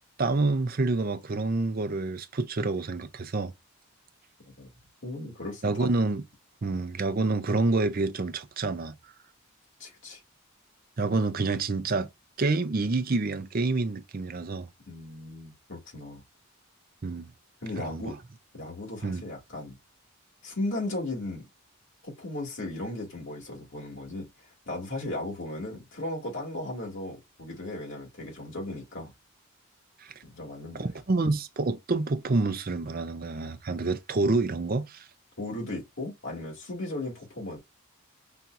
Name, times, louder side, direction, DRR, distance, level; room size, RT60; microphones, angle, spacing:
voice 1, 0.2-3.5 5.6-6.2 6.6-9.0 11.0-12.1 12.4-14.7 17.0-17.3 17.8-18.2 19.0-19.2 30.0-30.1 30.7-35.0, right 3 dB, 40° right, 0.5 m, -28 dB
voice 2, 5.0-5.9 9.8-10.2 14.9-16.2 17.6-18.1 18.5-19.7 20.4-21.4 22.0-24.3 24.7-29.1 30.3-30.9 31.2-31.3 35.4-37.6, left 2 dB, 55° left, 2.3 m, -36 dB
5.7 x 2.8 x 2.5 m
head